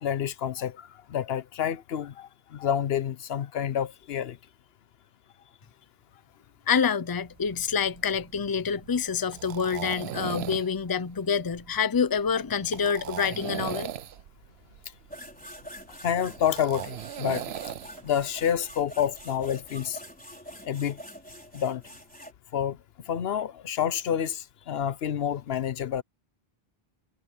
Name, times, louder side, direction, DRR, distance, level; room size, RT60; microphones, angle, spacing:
voice 1, 0.0-4.4 16.0-17.5 18.0-20.0 20.6-21.0 21.5-21.8 22.5-22.8 23.1-26.0, left 9 dB, 80° left, 0.9 m, -28 dB
voice 2, 6.7-13.9, left 6 dB, 25° left, 0.6 m, -27 dB
sound 1, 7.3-19.5, right 11 dB, 90° right, 0.9 m, -39 dB
sound 2, 15.1-22.3, equal, 10° left, 4.4 m, -45 dB
omnidirectional pair, 1.0 m